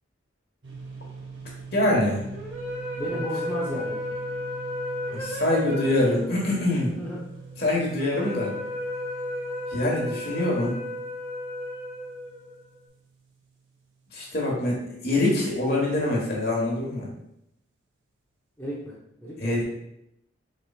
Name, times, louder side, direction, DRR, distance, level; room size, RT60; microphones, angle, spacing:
sound 1, 0.6-14.1, right 5 dB, 70° right, 0.8 m, -44 dB
voice 1, 1.7-2.2 5.1-6.9 7.6-8.5 9.7-10.8 14.1-17.1 19.4-19.6, left 1 dB, 50° left, -3 dB, 1.3 m, -24 dB
sound 2, 2.3-12.7, left 1 dB, 30° right, 1.3 m, -34 dB
voice 2, 3.0-4.0 6.9-7.2 18.6-18.9 19.2-19.6, right 1 dB, 10° left, -7 dB, 0.8 m, -33 dB
4.8 x 4.1 x 2.4 m, 0.79 s
head